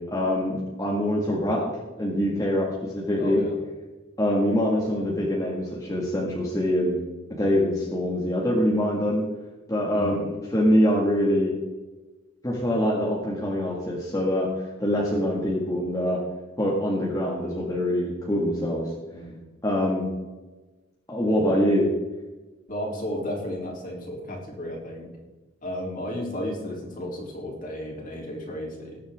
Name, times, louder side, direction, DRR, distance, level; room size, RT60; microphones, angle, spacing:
voice 1, 0.0-1.7 2.0-3.4 4.2-7.0 7.4-9.3 9.7-11.5 12.4-16.2 16.6-18.9 19.6-20.1 21.1-21.9, equal, 15° left, -4 dB, 2.0 m, -24 dB
voice 2, 3.2-3.6 9.9-10.2 19.1-19.4 22.7-25.1 25.6-29.0, left 1 dB, 45° left, -1 dB, 3.5 m, -33 dB
19.5 x 8.4 x 3.7 m, 1.2 s
head